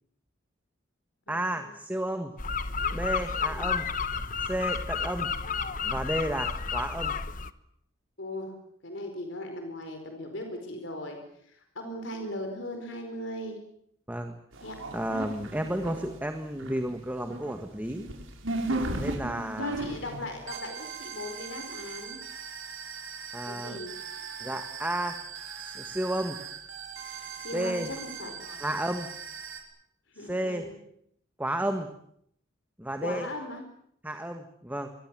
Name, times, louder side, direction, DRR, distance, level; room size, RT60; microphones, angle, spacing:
voice 1, 1.3-2.3 2.9-3.9 4.4-5.3 5.8-7.1 14.1-14.4 14.9-18.1 19.0-19.8 23.3-23.8 24.4-25.2 25.6-26.4 27.5-27.9 28.6-29.1 30.2-30.7 31.4-31.9 32.8-33.3 34.0-34.9, right 1 dB, 10° right, 6 dB, 1.6 m, -32 dB
sound 1, 2.4-7.5, left 5 dB, 40° left, 1.1 m, -31 dB
voice 2, 8.2-8.5 8.8-11.2 11.4-13.6 14.6-14.8 19.6-22.2 23.4-23.9 27.3-28.6 30.1-30.8 33.0-33.6, left 1 dB, 65° left, 5 dB, 4.8 m, -38 dB
sound 2, 14.5-16.2 16.4-29.6, right 3 dB, 80° right, 5.7 m, -38 dB
26.5 x 23.0 x 7.7 m, 0.71 s
head